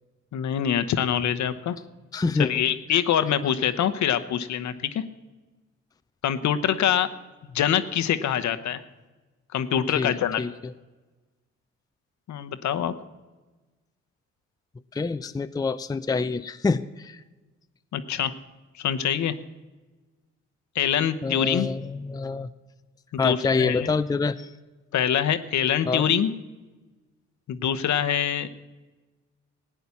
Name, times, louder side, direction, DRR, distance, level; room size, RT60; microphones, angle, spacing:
voice 1, 0.3-1.8 2.4-5.0 6.2-7.1 7.5-8.8 9.5-10.4 12.3-12.9 17.9-18.3 18.8-19.3 20.7-21.7 23.1-23.9 24.9-26.3 27.5-28.5, left 9 dB, 60° left, 10 dB, 1.0 m, -24 dB
voice 2, 2.1-2.5 9.9-10.5 14.9-17.2 21.2-22.5 23.2-24.5 25.9-26.1, left 4 dB, 10° left, 11 dB, 0.5 m, -26 dB
15.5 x 9.2 x 7.1 m, 1.2 s
hypercardioid pair, 55°, 33 cm